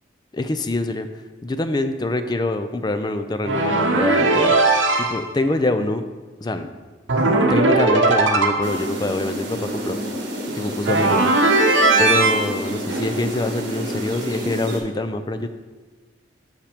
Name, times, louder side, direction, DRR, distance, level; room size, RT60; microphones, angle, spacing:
voice 1, 0.3-1.1 1.4-6.0 6.4-6.7 7.5-10.0 10.5-11.3 12.0-15.5, left 2 dB, 20° left, 9 dB, 0.4 m, -25 dB
sound 1, 3.4-5.2 7.1-8.8 10.8-12.4, right 2 dB, 80° right, 0.9 m, -18 dB
sound 2, 8.6-14.8, equal, 60° right, 1.5 m, -29 dB
6.6 x 5.7 x 5.0 m, 1.3 s
head